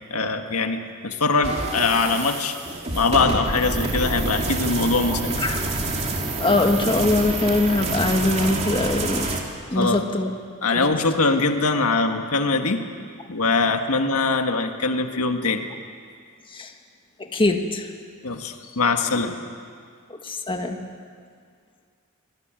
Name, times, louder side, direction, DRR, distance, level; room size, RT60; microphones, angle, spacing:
voice 1, 0.1-2.5 2.9-5.4 9.7-10.0 10.6-12.8 13.3-15.6 18.2-19.3, left 3 dB, 80° left, 5 dB, 1.8 m, -22 dB
sound 1, 1.4-9.4, right 2 dB, 30° right, 2.9 m, -27 dB
voice 2, 6.4-9.4 9.7-10.3 10.7-10.9 16.5-16.7 17.3-17.9 20.1-20.8, left 2 dB, 25° left, 4 dB, 1.7 m, -22 dB
25.0 x 20.5 x 9.0 m, 2.1 s
head